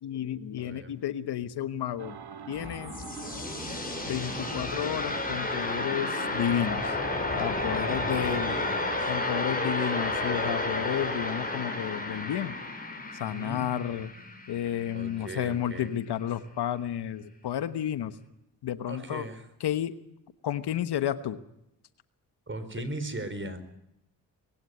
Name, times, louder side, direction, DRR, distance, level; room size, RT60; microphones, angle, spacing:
voice 1, 0.0-2.2 2.5-2.9 4.1-7.0 7.4-8.5 9.1-12.6 13.1-14.1 14.5-18.2 18.6-19.3 19.6-19.9 20.4-21.4, left 10 dB, 75° left, 12 dB, 1.3 m, -31 dB
voice 2, 0.6-0.9 7.8-9.1 9.4-9.7 13.2-13.7 14.9-15.9 18.9-19.4 22.5-23.6, right 2 dB, 30° right, 11 dB, 4.3 m, -39 dB
sound 1, 2.0-11.6, right 7 dB, 70° right, 2.1 m, -44 dB
sound 2, 2.4-15.2, left 2 dB, 20° left, 6.2 m, -32 dB
21.0 x 16.5 x 9.5 m, 0.81 s
cardioid pair, 60°, 40 cm